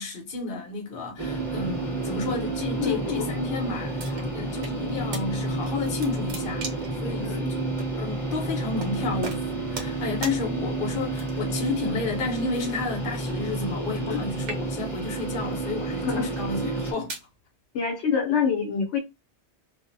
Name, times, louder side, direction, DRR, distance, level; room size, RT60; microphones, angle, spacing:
voice 1, 0.0-6.7 7.0-7.6 8.0-17.1, left 3 dB, 55° left, 0.9 m, -31 dB
sound 1, 1.2-16.9, right 2 dB, ahead, 1.0 m, -30 dB
voice 2, 2.8-3.3 4.1-4.4 7.2-7.5 14.0-14.3 16.0-16.3 17.7-19.0, left 6 dB, 80° left, 1.0 m, -27 dB
sound 2, 4.0-4.8 5.1-5.3 5.7-7.0 7.8-7.9 8.8-8.9 9.2-10.0 10.2-10.4 11.1-11.6 12.5-14.1 14.4-15.0 15.7-15.9 16.6-17.3, right 4 dB, 85° right, 1.0 m, -38 dB
2.5 x 2.0 x 2.5 m
omnidirectional pair, 1.2 m